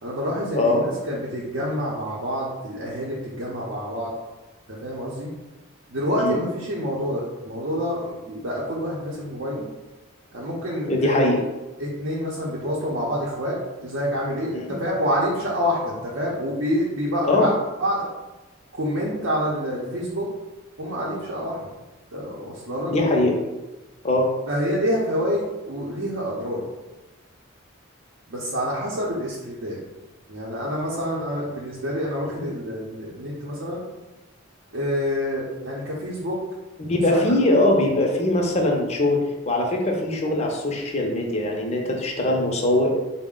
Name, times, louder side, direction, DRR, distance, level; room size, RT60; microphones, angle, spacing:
voice 1, 0.0-4.1 4.7-5.3 5.9-9.7 10.3-11.2 11.8-17.5 17.8-18.1 18.8-20.3 20.8-21.7 22.1-22.9 24.5-26.6 28.3-29.8 30.3-33.8 34.7-36.4 37.1-37.2, equal, 60° right, -6 dB, 0.7 m, -27 dB
voice 2, 10.9-11.4 14.5-14.7 17.2-17.5 22.9-23.4 24.0-24.3 32.4-32.5 36.9-42.9, left 1 dB, 30° left, 0 dB, 0.6 m, -21 dB
4.1 x 2.1 x 3.7 m, 1.1 s
head